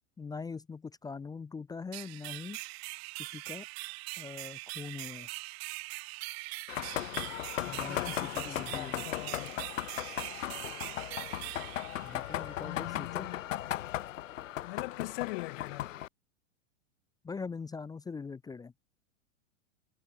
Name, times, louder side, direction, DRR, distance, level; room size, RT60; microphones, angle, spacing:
voice 1, 0.2-2.6 3.2-3.7 4.2-5.3 7.7-9.0 12.0-13.3 17.2-18.7, left 5 dB, 10° left, 0.7 m, -42 dB
sound 1, 1.9-12.6, right 24 dB, 50° right, 1.5 m, -42 dB
sound 2, 6.7-16.1, left 13 dB, 75° left, 1.0 m, -37 dB
voice 2, 7.6-9.7 12.6-13.5 14.6-15.9, left 25 dB, 50° left, 0.8 m, -42 dB
hypercardioid pair, 105°, 39 cm